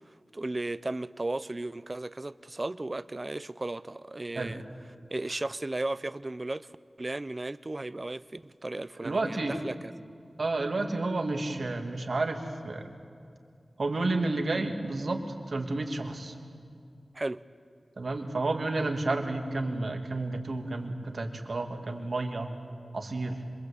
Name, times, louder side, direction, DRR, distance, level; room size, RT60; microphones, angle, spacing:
voice 1, 0.3-4.6 5.1-6.7 7.0-9.8 17.1-17.4, right 2 dB, 40° right, 0.7 m, -35 dB
voice 2, 9.0-9.6 10.4-12.9 13.8-15.2 15.5-16.4 18.0-22.5 22.9-23.4, right 2 dB, 70° right, 2.7 m, -31 dB
25.5 x 23.0 x 8.7 m
cardioid pair, 45°, 0 cm